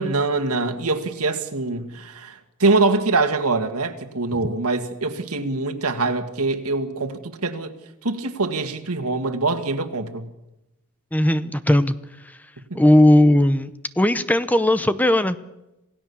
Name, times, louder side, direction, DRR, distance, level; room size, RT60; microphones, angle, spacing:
voice 1, 0.0-7.7 8.0-10.3 12.7-12.8, right 3 dB, 85° right, 2.0 m, -24 dB
voice 2, 11.1-11.9 12.7-13.7 14.0-15.4, left 1 dB, 5° left, 0.7 m, -17 dB
27.5 x 16.5 x 7.0 m
head